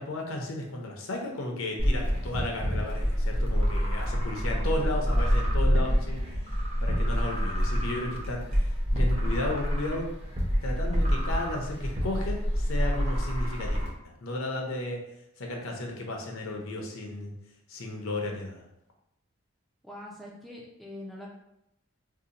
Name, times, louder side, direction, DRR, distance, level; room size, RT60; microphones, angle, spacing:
voice 1, 0.0-6.2 6.8-8.5 8.9-10.1 10.6-13.9 14.2-15.0 15.4-17.3 17.7-18.7, left 2 dB, 75° left, 1 dB, 0.6 m, -34 dB
sound 1, 1.8-13.9, equal, 30° right, 0.6 m, -27 dB
voice 2, 19.8-21.3, left 1 dB, ahead, -4 dB, 0.3 m, -46 dB
2.7 x 2.1 x 3.8 m, 0.82 s
head